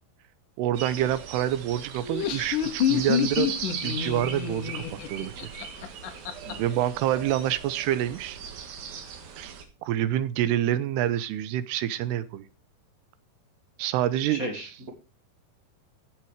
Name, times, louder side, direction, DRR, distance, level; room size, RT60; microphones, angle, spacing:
voice 1, 0.6-3.5 3.8-5.5 6.6-8.4 9.4-9.6 9.9-12.5 13.8-14.4, right 12 dB, 85° right, 14 dB, 2.8 m, -27 dB
sound 1, 0.7-9.6, right 7 dB, 65° right, 3.2 m, -38 dB
Laughter, 2.0-6.5, left 9 dB, 65° left, 2.4 m, -28 dB
voice 2, 14.3-14.9, equal, 35° right, 2 dB, 1.5 m, -35 dB
15.5 x 6.0 x 4.8 m, 0.30 s
omnidirectional pair, 4.7 m